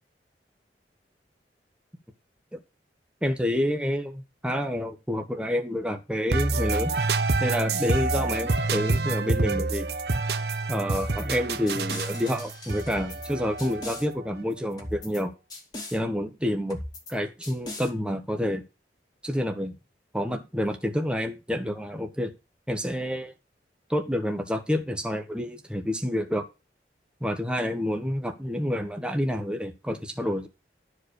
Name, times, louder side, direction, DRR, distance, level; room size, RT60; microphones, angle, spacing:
voice 1, 3.2-6.9 7.4-9.9 10.7-15.3 15.9-16.8 17.1-18.6 19.2-19.7 20.1-22.3 22.7-23.3 23.9-26.4 27.2-30.5, equal, 5° right, 5 dB, 1.3 m, -28 dB
sound 1, 6.3-14.1, right 3 dB, 65° right, 1.0 m, -27 dB
sound 2, 10.9-11.4 11.7-13.3 13.6-14.1 14.8-15.2 15.5-16.0 16.7-17.1 17.4-17.9, left 1 dB, 25° left, 2.3 m, -39 dB
12.0 x 4.9 x 6.6 m, 0.27 s
head